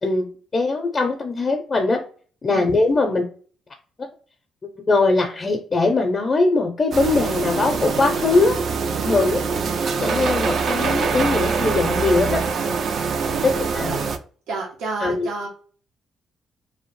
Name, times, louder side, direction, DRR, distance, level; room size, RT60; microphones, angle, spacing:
voice 1, 0.0-2.0 2.4-3.2 4.9-8.6 9.0-9.4 10.0-12.4 13.4-13.9 15.0-15.3, left 3 dB, 35° left, 2 dB, 0.5 m, -21 dB
sound 1, 6.9-14.2, right 5 dB, 60° right, 0.3 m, -24 dB
voice 2, 14.5-15.5, right 3 dB, 85° right, -1 dB, 0.7 m, -31 dB
2.7 x 2.0 x 3.0 m, 0.42 s
cardioid pair, 90°, 0 cm